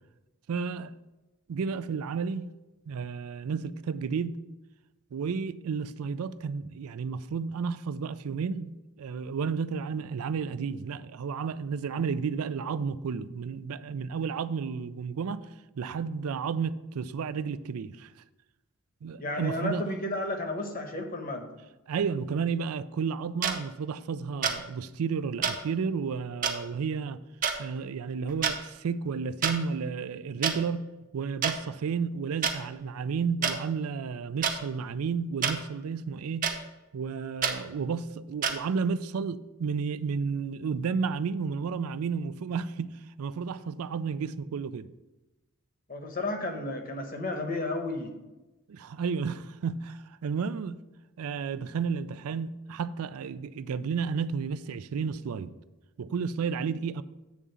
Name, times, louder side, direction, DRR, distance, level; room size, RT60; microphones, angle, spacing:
voice 1, 0.5-0.9 1.5-2.5 2.9-4.4 5.1-8.7 9.0-15.4 15.8-18.1 19.0-19.8 21.9-27.2 27.6-30.8 31.1-36.5 36.9-42.9 43.2-44.9 48.7-50.8 51.2-55.5 56.0-57.0, right 5 dB, 85° right, 0.4 m, -32 dB
voice 2, 19.2-21.5 45.9-48.1, left 2 dB, 40° left, 1.0 m, -32 dB
sound 1, 23.4-23.5 24.4-24.6 25.4-25.5 26.4-26.5 27.4-27.6 28.3-28.6 29.4-29.5 30.4-30.5 31.4-31.5 32.4-32.5 33.4-33.5 34.4-34.6 35.4-35.6 36.4-36.5 37.4-37.6 38.4-38.5, right 6 dB, 35° right, 0.7 m, -27 dB
8.4 x 3.7 x 6.8 m
head